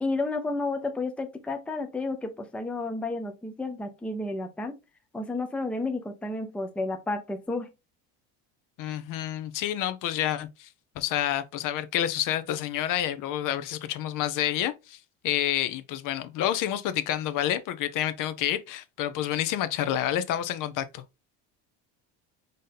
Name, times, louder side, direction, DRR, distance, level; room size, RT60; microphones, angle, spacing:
voice 1, 0.0-4.7 5.1-7.7, left 2 dB, 5° left, 0.5 m, -31 dB
voice 2, 8.8-10.7 11.0-15.0 15.2-21.0, left 11 dB, 55° left, 0.6 m, -29 dB
5.2 x 2.7 x 3.7 m
cardioid pair, 135°, 39 cm